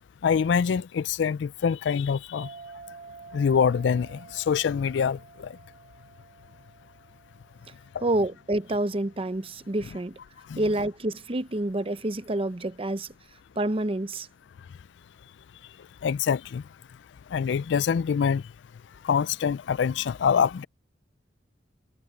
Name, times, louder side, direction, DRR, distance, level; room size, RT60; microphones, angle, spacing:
voice 1, 0.2-2.5 3.3-5.5 7.9-8.0 10.5-10.6 16.0-16.6 17.3-18.4 19.0-20.7, left 7 dB, 70° left, 0.4 m, -25 dB
sound 1, 2.3-9.4, right 4 dB, 50° right, 3.4 m, -49 dB
voice 2, 8.0-10.2 10.6-13.1 13.6-14.3, right 1 dB, 30° right, 0.8 m, -28 dB
head